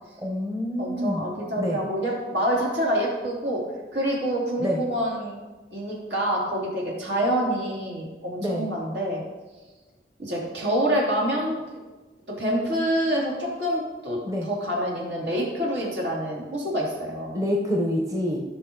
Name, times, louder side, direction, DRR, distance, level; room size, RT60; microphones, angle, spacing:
voice 1, 0.2-1.3 1.6-1.8 4.6-4.8 8.4-8.7 14.2-14.5 17.3-18.4, left 1 dB, 20° right, -1 dB, 1.0 m, -27 dB
voice 2, 0.8-3.6 3.9-5.4 5.7-9.2 10.2-11.6 12.3-17.3, equal, 75° right, -3 dB, 3.1 m, -27 dB
16.0 x 6.1 x 3.8 m, 1.2 s
head